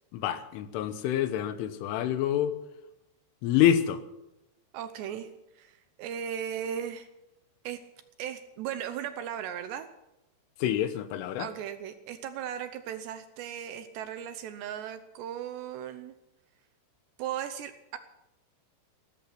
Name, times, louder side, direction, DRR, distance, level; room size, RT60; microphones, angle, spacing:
voice 1, 0.1-2.6 3.4-4.0 10.6-11.5, left 11 dB, 80° left, 12 dB, 3.6 m, -27 dB
voice 2, 4.7-5.3 5.6-7.1 7.6-7.8 8.2-9.9 11.4-16.1 17.2-18.0, right 9 dB, 75° right, 10 dB, 2.7 m, -37 dB
16.5 x 14.0 x 5.9 m, 0.91 s
omnidirectional pair, 5.6 m